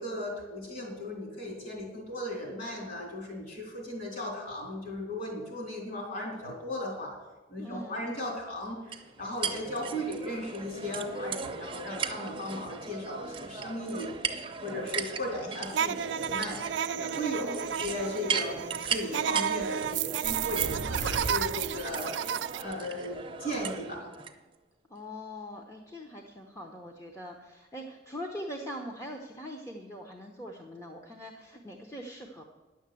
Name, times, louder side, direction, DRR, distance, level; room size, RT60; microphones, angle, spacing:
voice 1, 0.0-7.1 7.5-14.1 14.6-16.6 16.9-22.1 22.6-24.1, left 1 dB, 45° left, 0 dB, 3.8 m, -36 dB
voice 2, 7.6-8.0 17.4-17.8 24.9-32.4, equal, 15° left, 0 dB, 0.8 m, -42 dB
sound 1, 8.9-24.3, right 5 dB, 25° right, 0.7 m, -37 dB
sound 2, 15.7-22.6, right 9 dB, 70° right, 0.4 m, -32 dB
sound 3, 20.2-21.9, right 1 dB, 80° left, 3.9 m, -37 dB
10.0 x 7.2 x 7.7 m, 1.2 s
head